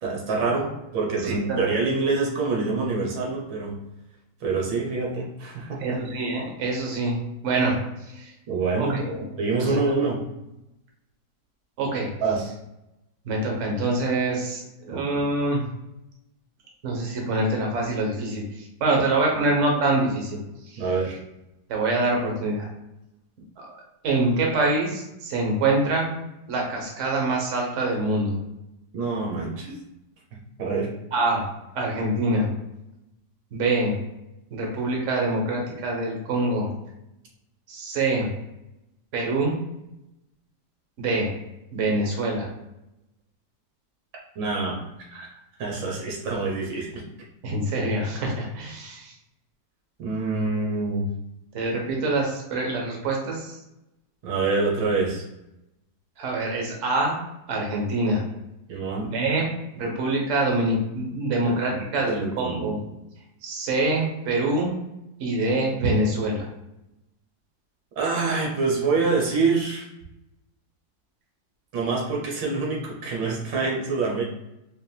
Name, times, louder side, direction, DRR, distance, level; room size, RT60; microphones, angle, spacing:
voice 1, 0.0-3.8 4.4-6.0 8.5-9.0 9.4-10.2 12.2-12.5 14.9-15.2 19.4-19.5 20.8-21.2 28.9-29.7 30.3-30.9 44.4-44.8 45.1-45.3 45.6-47.0 50.0-51.1 54.2-55.2 58.7-59.1 61.4-61.8 62.1-62.6 68.0-69.9 71.7-74.2, right 4 dB, 85° right, -2 dB, 1.8 m, -26 dB
voice 2, 1.2-1.7 5.8-7.2 7.4-7.7 8.1-8.3 8.8-9.3 9.6-9.8 11.8-12.1 13.3-15.6 16.8-18.4 18.8-20.8 21.7-22.7 23.6-23.7 24.0-26.1 26.5-28.4 31.1-31.4 31.7-32.5 33.5-34.0 34.5-36.7 37.7-38.3 39.1-39.5 41.0-41.3 41.7-42.5 47.4-49.1 51.5-53.6 56.2-57.2 57.5-58.2 59.1-59.5 59.8-62.8 63.4-64.7 65.2-66.4, right 2 dB, 50° right, 0 dB, 1.2 m, -25 dB
4.5 x 3.5 x 2.3 m, 0.89 s
omnidirectional pair, 2.0 m